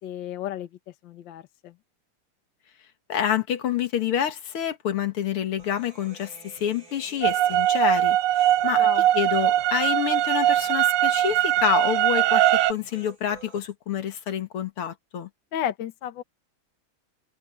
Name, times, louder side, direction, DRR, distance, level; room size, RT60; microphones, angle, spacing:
voice 1, 0.0-1.8 8.7-9.1 15.5-16.2, left 10 dB, 65° left, 1.7 m, -33 dB
voice 2, 3.1-8.8 9.2-12.4 12.7-15.3, left 9 dB, 85° left, 2.4 m, -27 dB
Human voice, 5.6-13.6, right 3 dB, 65° right, 7.5 m, -50 dB
sound 1, 7.2-12.7, right 13 dB, 90° right, 1.5 m, -21 dB
omnidirectional pair, 2.3 m